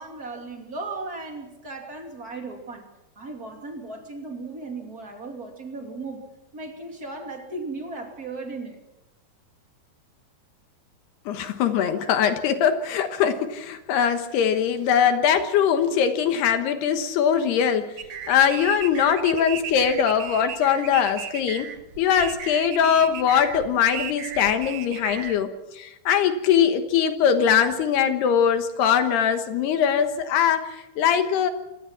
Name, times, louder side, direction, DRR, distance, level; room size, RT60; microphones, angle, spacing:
voice 1, 0.0-2.9 3.2-6.3 6.5-8.8, right 3 dB, 25° right, 3 dB, 2.4 m, -36 dB
voice 2, 11.3-18.0 18.3-21.7 22.0-31.5, left 8 dB, 70° left, 8 dB, 3.2 m, -21 dB
sound 1, 18.0-25.4, right 8 dB, 60° right, 1.9 m, -36 dB
26.0 x 18.5 x 5.9 m, 0.94 s
omnidirectional pair, 5.1 m